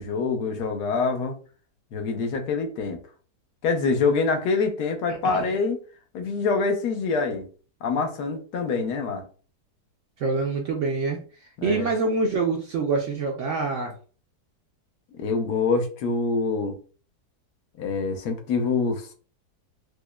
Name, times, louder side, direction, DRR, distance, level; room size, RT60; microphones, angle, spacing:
voice 1, 0.0-1.4 1.9-3.0 3.6-5.8 6.1-7.4 7.8-9.2 11.6-11.9 15.2-16.8 17.8-19.1, left 4 dB, 75° left, 5 dB, 1.2 m, -25 dB
voice 2, 10.2-13.9, right 4 dB, 65° right, 1 dB, 0.7 m, -26 dB
4.9 x 2.1 x 2.2 m, 0.38 s
omnidirectional pair, 1.7 m